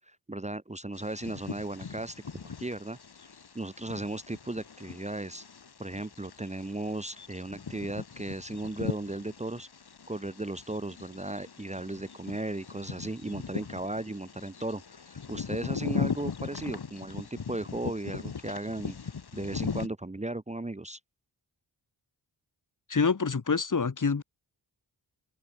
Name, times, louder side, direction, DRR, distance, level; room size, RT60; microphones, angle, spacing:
voice 1, 0.1-3.0 3.5-5.4 5.8-9.7 10.1-19.0 19.3-21.0, right 2 dB, 15° right, 1.1 m, -36 dB
Bird vocalization bird call bird song, 0.9-19.9, left 6 dB, 60° left, 2.7 m, -39 dB
voice 2, 22.9-24.2, left 5 dB, 45° left, 1.9 m, -26 dB
open air
cardioid pair, 70°, 44 cm